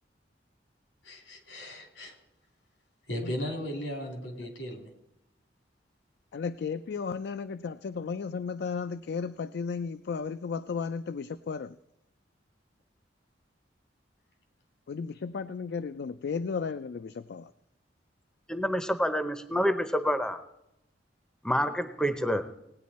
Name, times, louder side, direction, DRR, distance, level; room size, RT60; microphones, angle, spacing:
voice 1, 1.0-2.1 3.1-4.9, equal, 85° left, 3 dB, 2.8 m, -36 dB
voice 2, 6.3-11.8 14.9-17.5, left 5 dB, 65° left, 12 dB, 0.4 m, -34 dB
voice 3, 18.5-20.4 21.4-22.5, equal, 5° left, 10 dB, 0.6 m, -28 dB
18.5 x 9.3 x 4.2 m, 0.83 s
head